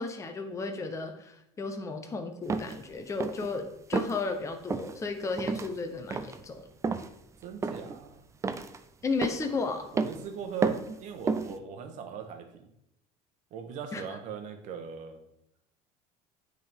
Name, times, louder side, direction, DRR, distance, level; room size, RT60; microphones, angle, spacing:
voice 1, 0.0-6.7 9.0-9.9 13.9-14.0, left 3 dB, 20° left, 5 dB, 0.9 m, -34 dB
sound 1, 2.5-2.8 3.2-3.5 3.9-4.2 4.7-4.9 5.4-5.7 6.1-6.4 6.8-7.1 7.6-8.0 8.4-8.8 9.2-9.5 10.0-10.2 10.6-11.0 11.3-11.6, right 4 dB, 20° right, 0.4 m, -31 dB
voice 2, 7.4-8.2 9.9-12.7 13.5-15.2, right 7 dB, 55° right, 6 dB, 1.1 m, -39 dB
9.4 x 3.8 x 3.5 m, 0.79 s
cardioid pair, 120°, 15 cm